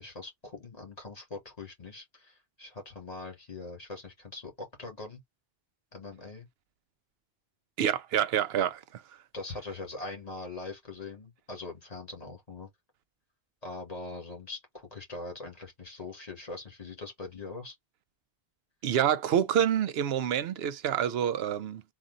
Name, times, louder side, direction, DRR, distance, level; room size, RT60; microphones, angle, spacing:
voice 1, 0.0-5.2 5.9-6.5 9.3-12.7 13.6-17.8, left 3 dB, 40° left, 2.3 m, -42 dB
voice 2, 7.8-9.0 18.8-21.8, right 9 dB, 80° right, 0.8 m, -27 dB
3.7 x 2.6 x 4.0 m
omnidirectional pair, 1.0 m